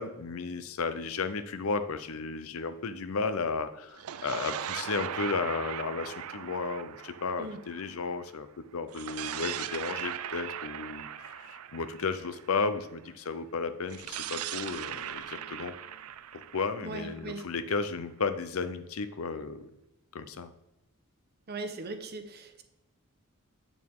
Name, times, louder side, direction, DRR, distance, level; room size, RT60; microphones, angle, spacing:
voice 1, 0.0-15.7 16.3-19.7 20.1-20.5, left 4 dB, 70° left, 11 dB, 0.6 m, -34 dB
sound 1, 3.9-8.3 8.9-12.8 13.9-17.7, right 10 dB, 80° right, 0.4 m, -39 dB
voice 2, 16.8-17.4 21.5-22.6, right 3 dB, 45° right, 7 dB, 0.9 m, -39 dB
8.5 x 7.1 x 3.6 m, 0.92 s
head